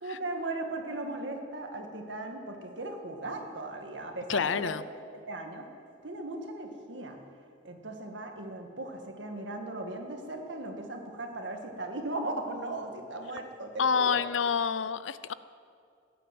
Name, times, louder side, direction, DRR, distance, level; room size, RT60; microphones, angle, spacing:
voice 1, 0.0-4.7 5.1-5.6 6.0-7.2 7.6-14.2, right 2 dB, 70° right, 3 dB, 2.0 m, -37 dB
voice 2, 4.3-4.8 13.8-15.3, left 6 dB, 90° left, 15 dB, 0.5 m, -28 dB
16.5 x 10.0 x 7.8 m, 2.4 s
head